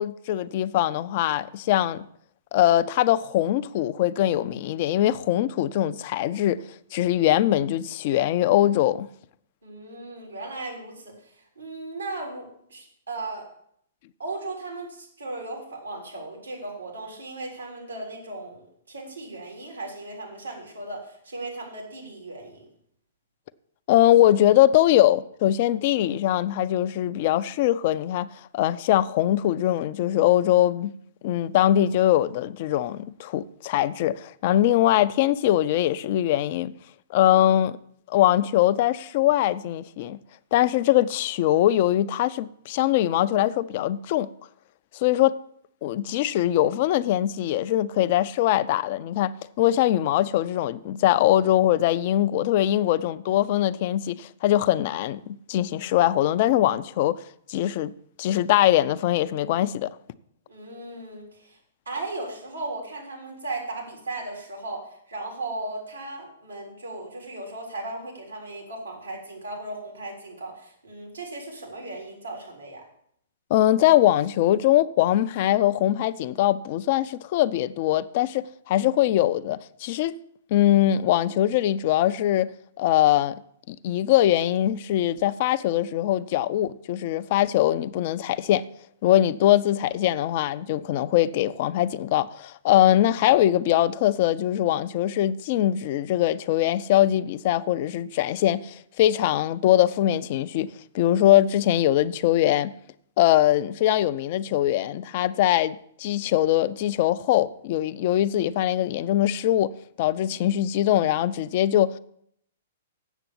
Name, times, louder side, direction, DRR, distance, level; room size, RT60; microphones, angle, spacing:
voice 1, 0.0-2.1 2.5-6.6 6.9-9.1 23.9-28.3 28.5-30.9 31.2-36.7 37.1-37.8 38.1-40.2 40.5-44.3 44.9-45.3 45.8-57.2 57.5-57.9 58.2-59.9 73.5-80.1 80.5-82.5 82.8-83.4 83.7-88.6 89.0-100.7 100.9-102.7 103.2-109.7 110.0-111.9, left 13 dB, 50° left, 0.5 m, -22 dB
voice 2, 9.6-13.4 14.2-22.7 60.5-61.6 61.9-72.8, right 2 dB, 90° right, 3.8 m, -36 dB
8.1 x 6.8 x 7.6 m
hypercardioid pair, 115°, 0 cm